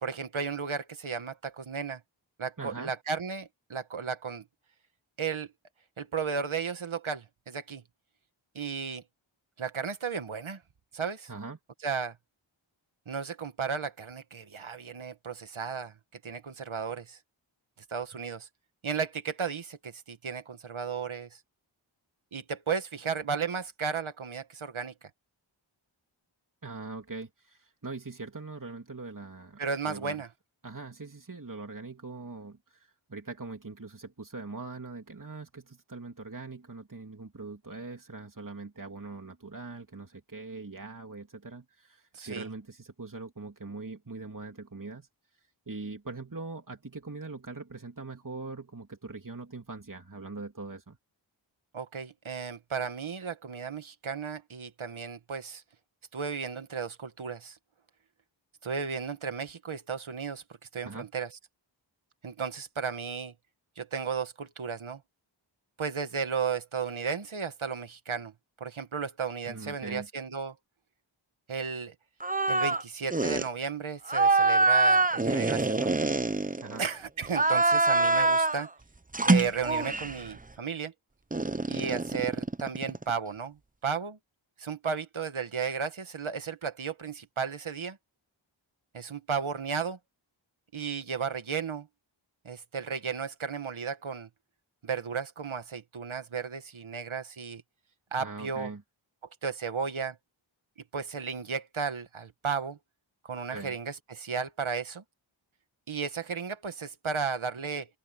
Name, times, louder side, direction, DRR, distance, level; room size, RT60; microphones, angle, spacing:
voice 1, 0.0-2.0 2.4-4.4 5.2-5.5 6.0-7.8 8.5-9.0 9.6-10.6 10.9-11.3 11.8-12.1 13.1-15.9 16.2-17.2 17.9-18.5 18.8-21.4 22.3-25.1 29.6-30.3 42.1-42.5 51.7-55.6 56.1-57.6 58.6-60.4 60.7-61.3 62.2-63.3 63.8-65.0 65.8-68.3 68.6-70.5 71.5-71.9 72.5-75.9 76.8-78.7 79.2-80.9 81.7-83.6 83.8-84.2 84.6-88.0 88.9-90.0 90.7-91.9 92.4-94.3 94.8-97.6 98.1-98.7 99.4-100.2 100.9-102.8 103.2-105.0 105.9-107.9, right 6 dB, 75° right, 1.7 m, -34 dB
voice 2, 2.6-2.9 11.3-11.6 26.6-30.2 30.6-45.1 45.7-51.0 60.8-61.1 69.4-70.1 76.6-76.9 98.2-98.8 103.5-103.8, right 3 dB, 40° right, 3.0 m, -42 dB
sound 1, 72.2-72.8 73.1-73.5 74.1-76.9 77.3-78.7 79.1-80.2 81.3-83.1, right 3 dB, 15° right, 0.8 m, -25 dB
open air
wide cardioid pair, 55°, 48 cm